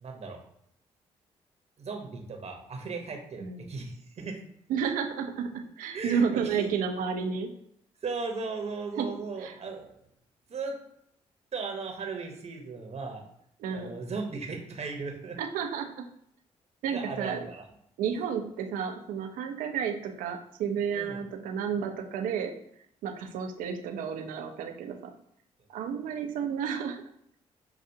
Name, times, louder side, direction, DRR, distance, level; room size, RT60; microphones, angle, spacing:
voice 1, 0.0-0.4 1.8-4.4 5.9-6.7 8.0-10.0 10.5-10.7 11.5-13.2 13.7-15.4 16.9-17.6 20.9-21.2, right 4 dB, 50° right, 2 dB, 1.0 m, -37 dB
voice 2, 4.7-7.5 9.0-9.1 9.4-9.5 13.6-13.9 15.4-16.0 16.8-17.4 18.0-22.5 23.0-25.1 25.7-27.0, right 7 dB, 80° right, 4 dB, 0.6 m, -31 dB
5.6 x 2.4 x 2.7 m, 0.72 s
supercardioid pair, 55°, 14 cm